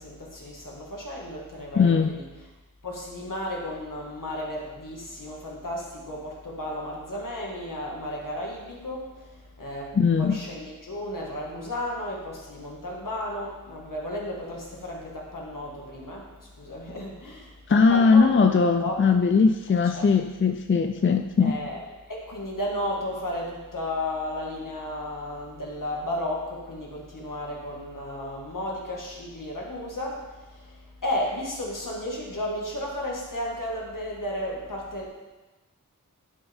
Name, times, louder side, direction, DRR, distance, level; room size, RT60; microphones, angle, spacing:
voice 1, 0.0-2.4 2.8-18.5 18.8-19.2 19.7-20.1 21.4-21.8 22.1-35.1, left 1 dB, 75° left, -3 dB, 1.9 m, -34 dB
voice 2, 1.8-2.1 9.9-10.4 17.7-21.6, left 5 dB, 40° left, 6 dB, 0.4 m, -20 dB
10.5 x 6.1 x 3.6 m, 1.2 s
wide cardioid pair, 60°, 32 cm